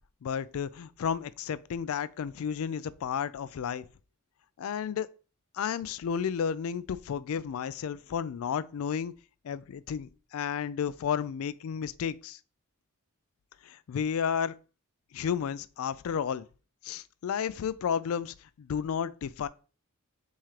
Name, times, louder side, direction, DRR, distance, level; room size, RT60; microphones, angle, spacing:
voice 1, 0.2-3.8 4.6-5.1 5.5-9.1 9.4-12.4 13.6-14.5 15.1-16.5 16.8-19.5, left 7 dB, 70° left, 0.3 m, -32 dB
3.6 x 3.2 x 4.3 m
head